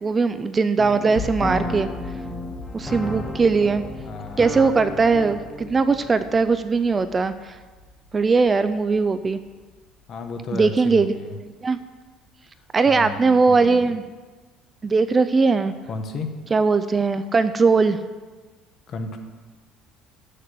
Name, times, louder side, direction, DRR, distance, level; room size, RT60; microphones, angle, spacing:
voice 1, 0.0-1.9 2.7-3.8 4.4-7.6 8.1-9.4 10.5-11.1 11.6-11.8 12.7-14.0 14.8-15.7 16.5-18.0, right 4 dB, 20° right, 12 dB, 0.3 m, -20 dB
sound 1, 0.8-6.4, left 1 dB, 15° left, 0.8 m, -34 dB
sound 2, 1.2-11.1, left 4 dB, 90° left, 1.3 m, -40 dB
voice 2, 4.0-4.5 10.1-11.4 12.8-13.9 15.9-16.3 18.9-19.2, left 3 dB, 40° left, 6 dB, 1.1 m, -33 dB
7.5 x 6.6 x 7.6 m, 1.4 s
cardioid pair, 145°, 0 cm